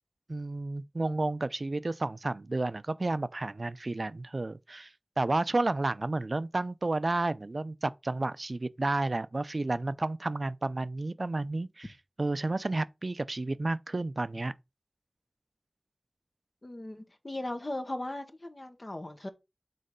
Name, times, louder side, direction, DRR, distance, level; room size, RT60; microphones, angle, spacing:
voice 1, 0.3-4.9 5.2-11.9 12.2-14.5, right 2 dB, 70° right, 0.4 m, -31 dB
voice 2, 16.6-19.3, left 1 dB, 55° left, 1.3 m, -38 dB
6.6 x 4.1 x 5.0 m
wide cardioid pair, 45°, 0 cm